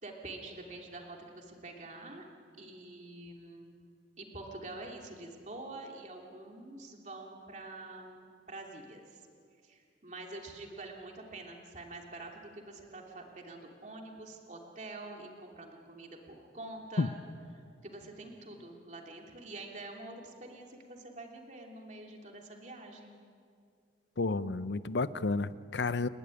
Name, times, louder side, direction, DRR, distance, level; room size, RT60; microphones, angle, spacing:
voice 1, 0.0-2.2 2.6-3.8 4.2-9.2 9.6-17.1 17.5-23.2, right 2 dB, 40° right, 1 dB, 2.9 m, -46 dB
voice 2, 24.2-26.1, left 3 dB, 75° left, 15 dB, 0.7 m, -31 dB
30.0 x 12.0 x 10.0 m, 2.3 s
head